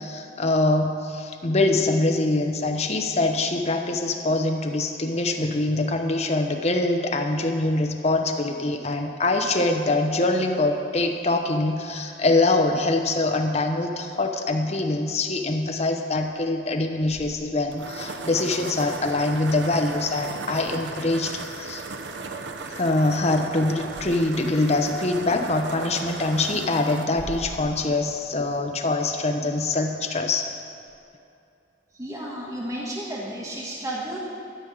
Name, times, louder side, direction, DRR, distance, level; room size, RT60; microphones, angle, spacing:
voice 1, 0.0-21.8 22.7-30.5, left 2 dB, 40° left, 4 dB, 0.9 m, -24 dB
sound 1, 17.0-28.8, right 3 dB, 80° right, 0.7 m, -37 dB
voice 2, 31.9-34.2, right 1 dB, 20° right, -4 dB, 1.5 m, -32 dB
13.0 x 5.4 x 8.4 m, 2.7 s
head